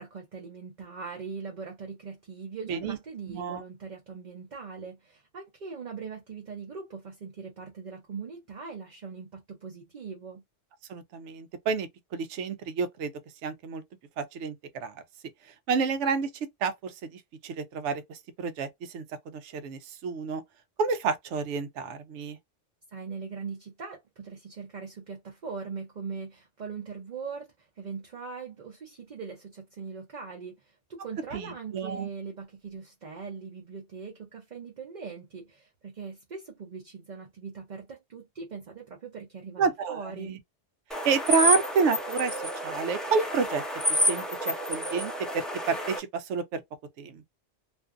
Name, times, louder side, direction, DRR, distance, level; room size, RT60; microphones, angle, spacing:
voice 1, 0.0-10.4 22.9-40.4, right 5 dB, 45° right, 0.7 m, -41 dB
voice 2, 3.3-3.6 10.9-13.1 13.4-13.8 14.2-14.9 15.7-16.3 16.6-19.0 19.3-20.4 20.8-22.4 31.3-32.1 39.6-40.4 41.0-42.3 42.6-43.6 43.9-46.6 47.0-47.3, right 5 dB, 85° right, 0.9 m, -29 dB
sound 1, 40.9-46.0, left 1 dB, ahead, 0.3 m, -29 dB
2.5 x 2.4 x 2.4 m
omnidirectional pair, 1.2 m